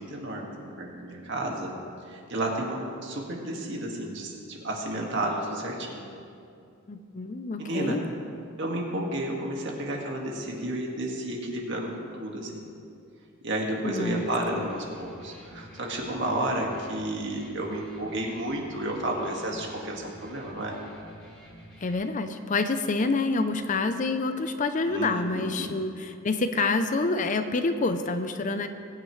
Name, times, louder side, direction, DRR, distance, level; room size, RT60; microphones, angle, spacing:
voice 1, 0.0-1.7 2.1-6.1 7.6-8.0 8.6-12.7 13.4-20.8 24.9-25.7, right 1 dB, 55° right, 0 dB, 1.8 m, -32 dB
voice 2, 6.9-8.0 13.8-14.2 14.5-14.6 21.8-28.7, left 3 dB, 35° left, 9 dB, 0.5 m, -27 dB
Electric guitar, 14.0-21.9, equal, 5° left, 2.9 m, -49 dB
21.0 x 9.5 x 3.2 m, 2.5 s
head